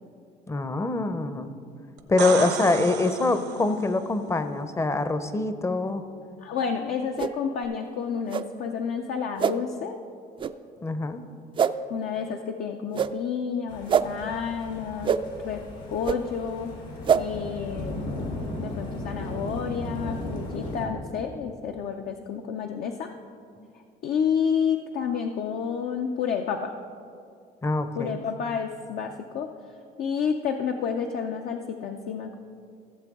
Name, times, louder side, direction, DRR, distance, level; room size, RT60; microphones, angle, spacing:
voice 1, 0.5-1.5 2.1-6.0 10.8-11.2 23.6-23.7 27.6-28.2, left 2 dB, 15° left, 10 dB, 0.6 m, -25 dB
sound 1, 2.0-3.9 7.6-7.7, right 8 dB, 80° right, 0.8 m, -32 dB
voice 2, 6.4-10.0 11.9-15.1 15.4-15.6 15.9-16.7 17.1-23.1 24.0-26.7 28.0-29.5 30.0-32.3, left 7 dB, 65° left, 4 dB, 0.6 m, -30 dB
sound 2, 7.2-7.3 8.3-8.4 9.4-9.5 10.4-10.5 11.6-11.7 12.9-13.1 13.9-14.0 15.0-15.2 16.0-16.2 17.0-17.2, right 8 dB, 30° right, 0.3 m, -23 dB
sound 3, 13.7-20.9, left 1 dB, 90° left, 2.7 m, -36 dB
16.5 x 7.5 x 3.6 m, 2.4 s
cardioid pair, 110°, 17 cm